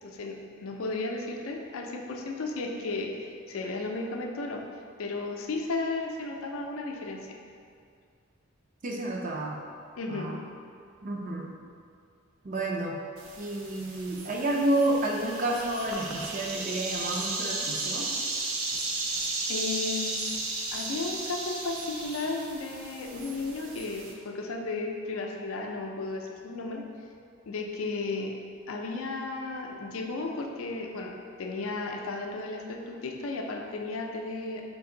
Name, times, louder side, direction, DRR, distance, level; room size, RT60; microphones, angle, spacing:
voice 1, 0.0-4.6 5.0-7.4 10.0-10.3 19.5-20.2 20.7-26.8 27.5-28.3 28.7-31.1 31.4-34.6, left 3 dB, 80° left, 2 dB, 0.4 m, -34 dB
voice 2, 8.8-9.6 10.1-10.4 11.0-11.5 12.4-13.0 13.4-18.1, right 1 dB, 40° right, -1 dB, 0.4 m, -30 dB
sound 1, 13.2-24.1, right 3 dB, 90° right, 0.6 m, -34 dB
4.6 x 2.5 x 3.7 m, 2.3 s
head